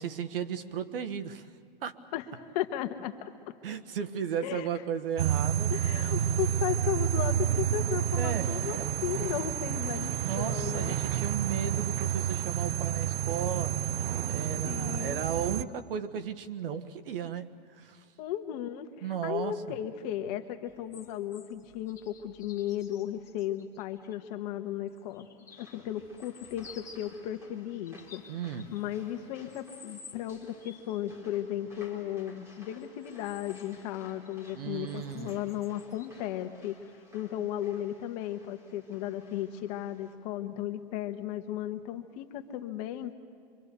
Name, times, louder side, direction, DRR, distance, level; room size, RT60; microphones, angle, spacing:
voice 1, 0.0-1.5 1.8-2.0 3.6-5.7 6.0-6.3 8.2-8.9 10.2-13.8 14.3-18.0 19.0-19.8 28.3-28.7 34.5-35.4, right 8 dB, 70° right, 9 dB, 1.5 m, -35 dB
voice 2, 2.5-3.5 4.4-4.7 5.7-11.0 14.7-15.2 18.2-25.3 25.6-28.2 28.7-36.8 37.1-43.1, left 12 dB, 45° left, 7 dB, 1.6 m, -35 dB
sound 1, 5.2-15.6, right 10 dB, 85° right, 0.7 m, -30 dB
sound 2, 20.7-24.2 24.9-27.2 27.7-29.1 29.5-31.0 32.8-34.6 34.9-36.2 36.9-37.0, left 5 dB, 10° left, 1.8 m, -54 dB
sound 3, 25.5-40.1, left 2 dB, 10° right, 4.1 m, -57 dB
25.5 x 25.0 x 6.9 m, 2.4 s
hypercardioid pair, 150°, 29 cm